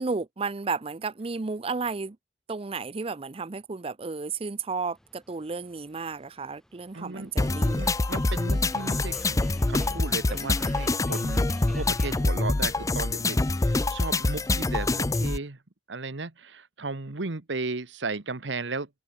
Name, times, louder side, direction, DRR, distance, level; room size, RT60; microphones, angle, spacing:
voice 1, 0.0-2.2 2.5-7.8, right 4 dB, 35° right, 0.6 m, -33 dB
Subway metro underground, 4.9-15.5, equal, 5° left, 4.3 m, -52 dB
voice 2, 6.9-7.3 7.7-15.6 15.9-18.9, right 3 dB, 90° right, 1.3 m, -35 dB
sound 1, 7.4-15.4, left 2 dB, 20° left, 0.4 m, -25 dB
open air
head